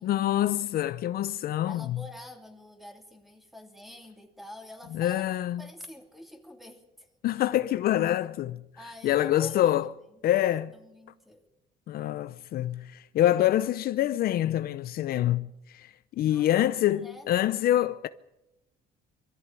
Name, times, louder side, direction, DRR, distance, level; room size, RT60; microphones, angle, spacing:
voice 1, 0.0-2.0 4.9-5.6 7.2-8.6 9.0-9.9 10.2-10.7 11.9-18.1, left 13 dB, 65° left, 0.7 m, -26 dB
voice 2, 1.7-5.2 5.6-7.1 8.8-9.8 10.7-11.4 13.2-13.3 16.3-16.5 16.9-17.3, left 1 dB, ahead, 3.0 m, -46 dB
22.5 x 14.5 x 9.0 m
cardioid pair, 110°, 17 cm